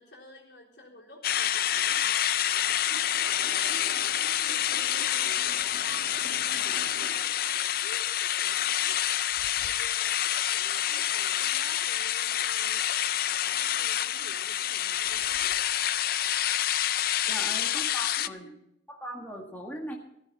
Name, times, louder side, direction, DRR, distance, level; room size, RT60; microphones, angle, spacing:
voice 1, 0.0-4.1 4.5-9.0 9.3-10.2 10.5-12.9 13.2-15.6 17.2-17.7 18.2-18.6, left 1 dB, 75° left, -1 dB, 4.0 m, -50 dB
sound 1, 1.2-18.3, left 11 dB, 50° left, 0.4 m, -28 dB
sound 2, 2.6-7.3, right 1 dB, 65° right, 3.2 m, -46 dB
voice 2, 17.3-18.5 18.9-19.9, equal, 10° left, -1 dB, 1.8 m, -39 dB
14.5 x 14.0 x 4.1 m, 0.79 s
head